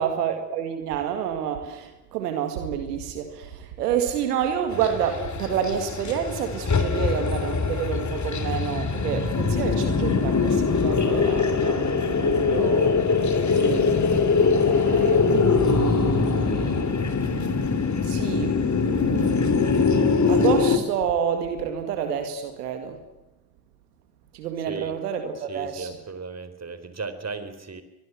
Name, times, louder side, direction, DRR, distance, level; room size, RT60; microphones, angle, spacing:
voice 1, 0.0-13.2 13.5-14.0 14.6-17.5 18.0-19.9 20.3-23.0 24.3-26.0, right 8 dB, 85° right, 2.1 m, -29 dB
sound 1, 4.7-20.8, left 5 dB, 35° left, 3.2 m, -22 dB
voice 2, 25.5-27.8, right 4 dB, 35° right, 4.1 m, -35 dB
24.0 x 19.5 x 7.6 m
hypercardioid pair, 40°, 46 cm